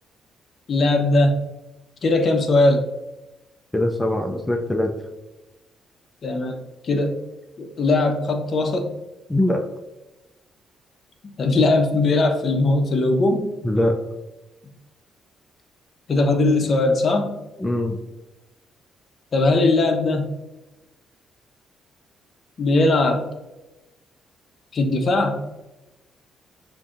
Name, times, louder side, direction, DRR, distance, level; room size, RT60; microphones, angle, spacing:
voice 1, 0.7-1.4 2.0-2.8 6.2-6.6 6.8-7.2 7.6-8.9 11.4-13.5 16.1-17.3 19.3-20.3 22.6-23.2 24.7-25.4, left 2 dB, 50° left, 5 dB, 0.6 m, -19 dB
voice 2, 3.7-4.9 9.3-9.6 13.6-14.0 17.6-18.0, left 1 dB, 10° left, 3 dB, 0.4 m, -22 dB
6.8 x 2.6 x 2.4 m, 1.0 s
cardioid pair, 90°, 0 cm